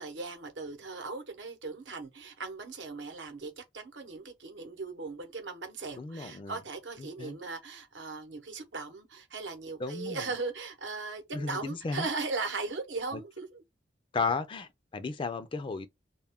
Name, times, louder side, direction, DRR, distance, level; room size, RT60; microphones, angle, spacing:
voice 1, 0.0-13.6, right 3 dB, 85° right, 0.8 m, -38 dB
voice 2, 6.0-6.6 7.0-7.4 9.8-10.3 11.3-12.1 13.1-13.2 14.1-15.9, left 4 dB, 30° left, 0.3 m, -34 dB
2.2 x 2.1 x 3.4 m
head